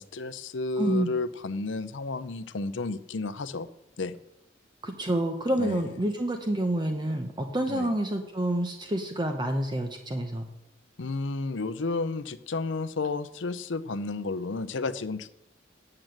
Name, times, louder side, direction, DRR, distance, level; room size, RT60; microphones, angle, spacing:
voice 1, 0.0-3.7 4.0-4.1 5.6-6.0 7.7-7.9 11.0-15.3, left 3 dB, 70° left, 13 dB, 0.6 m, -32 dB
voice 2, 0.8-1.1 4.8-10.5, right 1 dB, 25° right, 5 dB, 0.8 m, -28 dB
8.9 x 7.7 x 7.8 m, 0.86 s
head